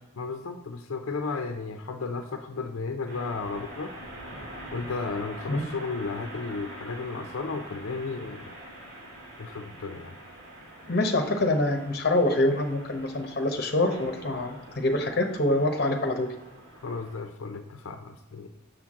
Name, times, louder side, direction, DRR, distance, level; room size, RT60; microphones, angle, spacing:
voice 1, 0.2-4.0 4.7-8.5 9.4-10.2 16.8-18.5, left 4 dB, 90° left, 6 dB, 0.5 m, -34 dB
sound 1, 3.1-17.2, right 1 dB, 75° right, 2.5 m, -45 dB
voice 2, 10.9-16.3, left 1 dB, 50° left, 4 dB, 0.9 m, -25 dB
6.7 x 5.9 x 3.7 m, 1.1 s
head